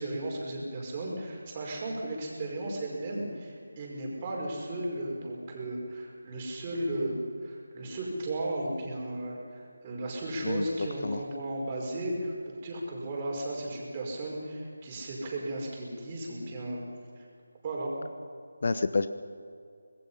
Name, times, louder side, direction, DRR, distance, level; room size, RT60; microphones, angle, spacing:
voice 1, 0.0-16.8 17.2-17.3 17.6-17.9, right 1 dB, 25° right, -2 dB, 5.3 m, -35 dB
voice 2, 10.4-11.2 18.6-19.1, left 3 dB, 50° left, 11 dB, 0.9 m, -29 dB
25.5 x 20.5 x 5.7 m, 2.3 s
figure-of-eight pair, 165°, 0 cm